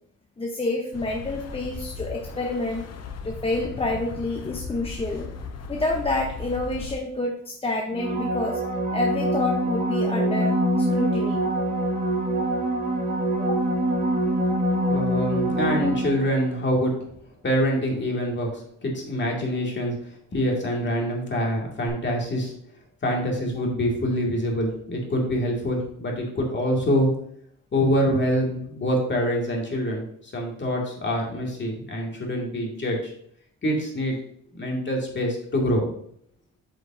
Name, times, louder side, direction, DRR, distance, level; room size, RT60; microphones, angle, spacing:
voice 1, 0.4-2.9 3.2-5.3 5.7-8.6 8.9-11.4 13.4-13.6, left 2 dB, 20° left, 1 dB, 0.8 m, -28 dB
sound 1, 0.9-7.0, left 4 dB, 55° left, 0.9 m, -37 dB
sound 2, 7.9-16.5 21.9-22.0, right 1 dB, 30° right, 1.9 m, -24 dB
voice 2, 14.9-16.9 17.4-18.5 18.8-20.0 20.3-22.5 23.0-27.1 27.7-33.1 33.6-34.2 34.5-35.9, equal, 40° left, -1 dB, 2.2 m, -25 dB
8.0 x 5.3 x 2.7 m, 0.68 s
cardioid pair, 90°, 30 cm